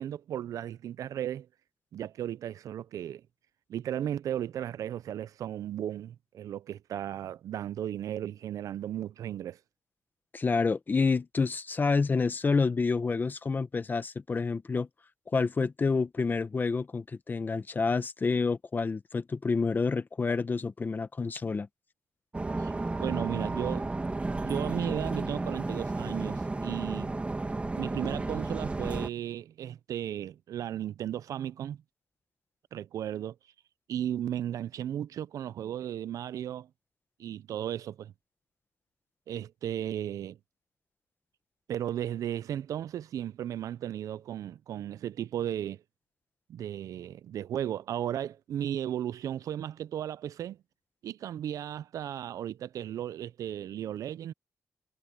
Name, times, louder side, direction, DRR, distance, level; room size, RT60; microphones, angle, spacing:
voice 1, 0.0-1.5 1.9-3.2 3.7-9.6 22.6-22.7 23.0-23.9 24.4-27.1 27.8-31.8 32.7-33.3 33.9-36.7 37.2-38.1 39.3-40.4 41.7-45.8 46.5-50.6 51.0-54.3, right 10 dB, 80° right, 0.4 m, -35 dB
voice 2, 10.3-14.9 15.3-21.7, left 4 dB, 35° left, 1.0 m, -28 dB
sound 1, 22.3-29.1, right 2 dB, 20° right, 2.0 m, -33 dB
cardioid pair, 95°, 6 cm